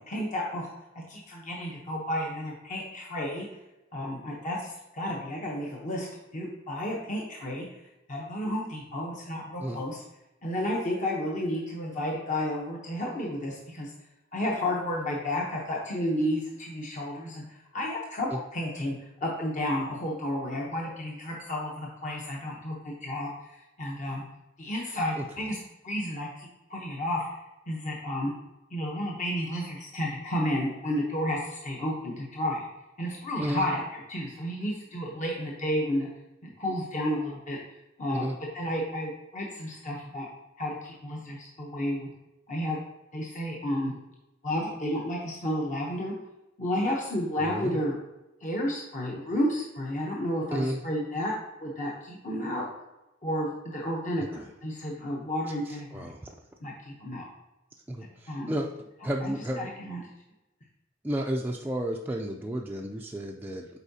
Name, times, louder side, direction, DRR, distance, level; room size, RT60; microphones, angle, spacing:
voice 1, 0.1-3.5 3.9-6.1 6.3-7.7 8.1-10.0 10.4-13.9 14.3-17.4 17.7-18.9 19.2-24.2 24.6-25.6 25.8-27.2 27.7-28.3 28.7-32.7 33.0-36.1 36.6-37.6 38.0-38.3 38.5-40.3 40.6-42.1 42.5-42.8 43.1-43.9 44.4-46.1 46.6-47.9 48.4-51.3 51.6-52.6 53.2-56.1 56.6-57.2 58.3-58.6 59.2-60.0, left 1 dB, 40° left, -2 dB, 0.9 m, -31 dB
voice 2, 47.4-47.8 50.5-50.8 54.4-54.5 55.7-56.3 57.9-58.7 59.0-59.7 61.0-63.7, right 1 dB, 10° right, -1 dB, 0.3 m, -32 dB
8.1 x 4.6 x 2.8 m, 0.97 s
head